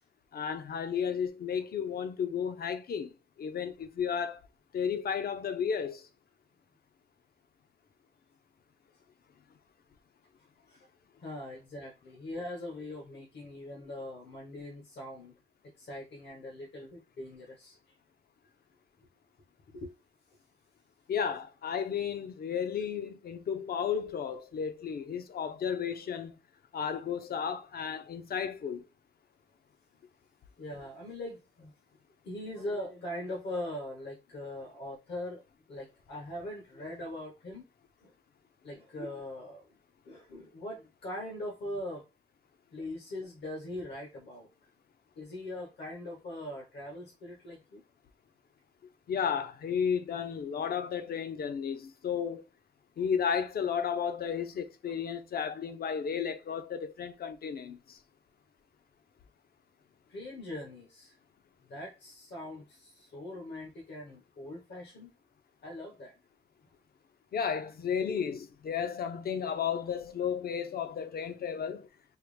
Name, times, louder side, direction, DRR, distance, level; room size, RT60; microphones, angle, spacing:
voice 1, 0.3-4.4 4.7-6.1 21.1-26.4 26.7-28.9 49.1-52.4 53.0-58.0 67.3-71.9, left 7 dB, 60° left, 0.5 m, -33 dB
voice 2, 11.2-15.3 15.8-17.8 19.7-19.9 30.6-31.7 32.2-35.4 35.7-37.6 38.0-38.1 38.6-39.6 40.0-42.0 42.7-44.5 45.2-47.8 55.3-55.4 60.1-61.1 61.7-65.1 65.6-66.1, left 1 dB, 75° left, 1.1 m, -41 dB
4.5 x 2.0 x 3.2 m
wide cardioid pair, 160°, 18 cm